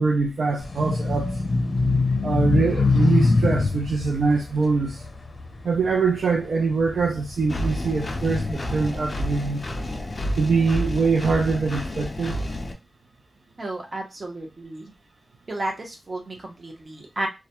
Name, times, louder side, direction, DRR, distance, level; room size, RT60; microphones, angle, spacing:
voice 1, 0.0-1.4 2.2-5.0 5.6-9.7 10.4-12.4, right 4 dB, 70° right, 0.4 m, -23 dB
sound 1, 0.6-6.1 6.7-8.5, left 3 dB, 65° left, 0.7 m, -24 dB
Engine, 7.5-12.7, left 1 dB, 30° left, 0.4 m, -30 dB
voice 2, 13.6-14.9 15.5-17.3, right 2 dB, 40° right, 0.7 m, -32 dB
2.3 x 2.1 x 2.9 m
wide cardioid pair, 145°, 0 cm